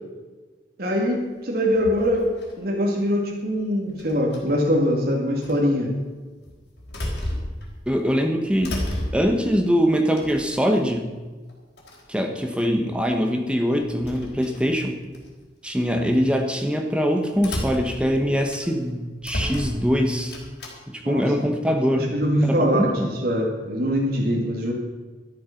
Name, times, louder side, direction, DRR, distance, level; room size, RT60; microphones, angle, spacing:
voice 1, 0.8-5.9 21.0-21.2 21.9-24.7, equal, 60° right, -1 dB, 2.2 m, -23 dB
sound 1, 1.7-2.6 4.0-4.7 5.4-5.6 6.4-7.9 8.3-9.5 10.1-10.8 11.5-11.6 11.8-12.1 13.7-15.3 15.8-16.1 17.3-18.9 19.2-20.7, left 1 dB, 75° left, 4.0 m, -33 dB
voice 2, 7.9-8.8 9.1-11.1 12.1-15.0 15.6-20.3 20.9-22.0 22.4-23.1, equal, 5° right, 4 dB, 1.2 m, -23 dB
13.0 x 11.0 x 5.8 m, 1.3 s
head